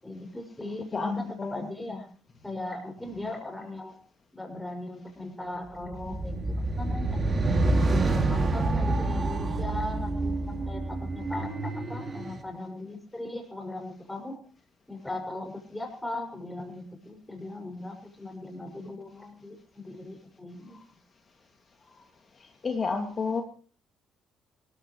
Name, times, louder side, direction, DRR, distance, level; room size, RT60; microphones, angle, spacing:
voice 1, 0.0-2.1 2.4-4.0 4.3-7.2 7.9-14.4 14.9-21.0, left 2 dB, 10° left, 4 dB, 6.5 m, -38 dB
voice 2, 0.9-1.6 22.6-23.4, left 4 dB, 40° left, 4 dB, 2.5 m, -30 dB
sound 1, 5.9-12.4, right 2 dB, 35° right, 2.6 m, -27 dB
25.5 x 15.0 x 3.3 m, 0.42 s
figure-of-eight pair, 45°, 0 cm